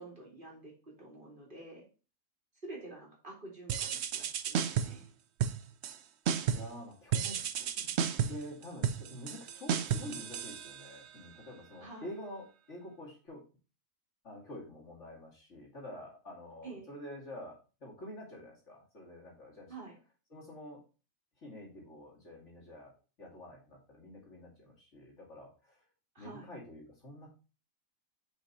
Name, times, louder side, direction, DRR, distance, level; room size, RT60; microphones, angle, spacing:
voice 1, 0.0-1.8 2.6-5.1 11.8-12.1 16.6-16.9 19.7-20.0 26.1-26.5, right 2 dB, 35° right, -2 dB, 2.4 m, -48 dB
sound 1, 3.7-5.1 5.4-6.0 6.3-6.8 7.1-11.1, right 8 dB, 60° right, 0.8 m, -33 dB
voice 2, 6.5-7.9 8.2-13.4 14.2-19.7 20.3-20.8 21.4-22.9 23.2-25.8 26.2-27.3, left 1 dB, 60° left, -2 dB, 2.7 m, -48 dB
5.6 x 5.5 x 4.1 m, 0.34 s
omnidirectional pair, 1.4 m